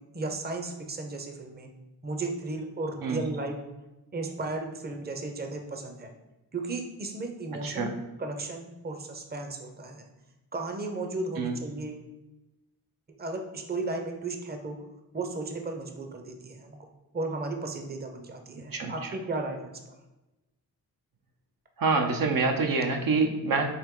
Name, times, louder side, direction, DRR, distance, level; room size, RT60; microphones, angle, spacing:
voice 1, 0.1-1.7 2.0-3.6 4.1-6.1 6.5-7.9 8.2-10.0 10.5-12.1 13.2-14.8 15.1-16.8 17.1-20.0, right 2 dB, 25° right, 4 dB, 0.6 m, -35 dB
voice 2, 21.8-23.7, right 4 dB, 65° right, 4 dB, 0.6 m, -26 dB
4.6 x 3.0 x 3.7 m, 1.0 s
wide cardioid pair, 90°, 37 cm